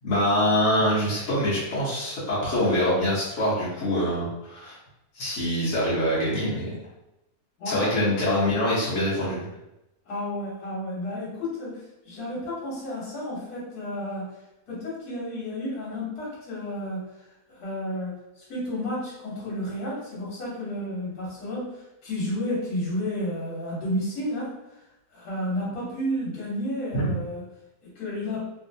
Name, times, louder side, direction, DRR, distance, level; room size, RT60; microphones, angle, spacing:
voice 1, 0.0-4.8 5.1-6.7 7.6-9.5 26.9-27.1, left 1 dB, 55° left, -9 dB, 1.2 m, -24 dB
voice 2, 7.6-8.1 10.1-14.3 14.7-17.2 17.5-24.8 25.1-27.4 27.8-28.5, left 1 dB, 80° left, -7 dB, 1.5 m, -32 dB
3.0 x 2.6 x 2.6 m, 0.92 s
omnidirectional pair, 1.6 m